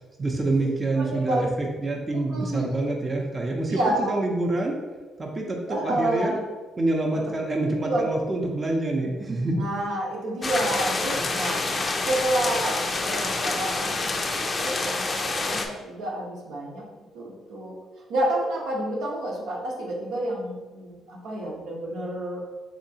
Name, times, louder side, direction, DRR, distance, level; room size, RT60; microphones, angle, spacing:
voice 1, 0.2-4.8 5.2-6.4 6.8-9.5 11.1-11.2, right 2 dB, 30° right, 0 dB, 0.6 m, -27 dB
voice 2, 0.9-1.5 2.1-2.9 3.7-4.2 5.7-6.4 7.4-7.5 7.8-8.1 9.5-11.6 12.0-16.8 17.1-17.7 18.1-22.4, right 1 dB, 85° right, -3 dB, 0.8 m, -29 dB
sound 1, 10.4-15.7, left 3 dB, 40° left, 0.4 m, -27 dB
3.5 x 2.9 x 2.7 m, 1.2 s
supercardioid pair, 70°, 0 cm